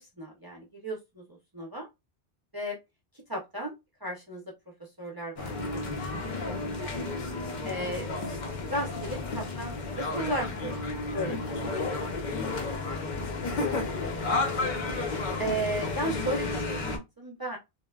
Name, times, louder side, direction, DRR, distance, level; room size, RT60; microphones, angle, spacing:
voice 1, 0.0-1.9 2.5-2.8 3.3-3.7 4.0-4.4 4.8-6.1 6.5-6.6 6.8-7.0 7.6-8.1 8.7-11.3 11.6-12.1 15.4-17.6, right 1 dB, 30° right, 0.4 m, -35 dB
sound 1, 5.4-17.0, left 3 dB, 55° left, 0.6 m, -32 dB
voice 2, 5.9-6.2 11.1-11.4 11.7-13.0 13.4-14.7, left 5 dB, 80° left, 0.9 m, -42 dB
2.9 x 2.1 x 2.2 m
omnidirectional pair, 1.1 m